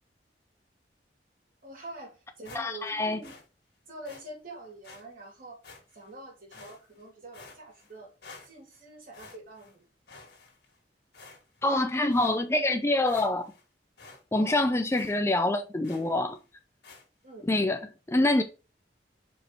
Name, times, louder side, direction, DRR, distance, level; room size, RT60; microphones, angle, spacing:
voice 1, 1.6-3.3 3.9-5.6 5.9-8.1 8.4-9.8 14.3-14.6 17.2-17.5, right 2 dB, 55° right, 2.8 m, -45 dB
sound 1, 2.4-2.9 3.2-3.5 4.0-4.2 4.8-5.0 5.6-6.1 6.5-7.0 7.3-7.9 8.2-8.8 9.1-9.7 10.1-10.8 11.1-11.6 12.1-12.4 12.8-12.9 13.1-13.6 14.0-14.2 14.5-14.6 14.9-15.2 15.8-16.2 16.8-17.0, left 3 dB, 70° left, 2.0 m, -50 dB
voice 2, 2.5-3.2 11.6-13.5 14.3-16.4 17.5-18.4, left 2 dB, 15° left, 0.5 m, -26 dB
5.1 x 4.7 x 4.2 m
head